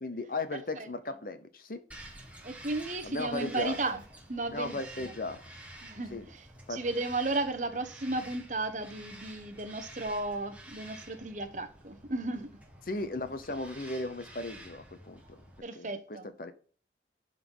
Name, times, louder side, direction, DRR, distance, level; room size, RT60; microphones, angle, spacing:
voice 1, 0.0-1.8 3.0-3.8 4.5-5.4 6.1-6.2 6.7-6.8 12.9-15.4 15.7-16.5, left 2 dB, 50° left, 0.9 m, -36 dB
Bird vocalization bird call bird song, 1.9-15.6, right 1 dB, 10° right, 1.3 m, -50 dB
voice 2, 2.4-4.0 4.3-4.8 5.8-6.4 6.7-12.5 15.6-16.3, right 2 dB, 45° right, 1.0 m, -34 dB
12.0 x 4.1 x 3.9 m
head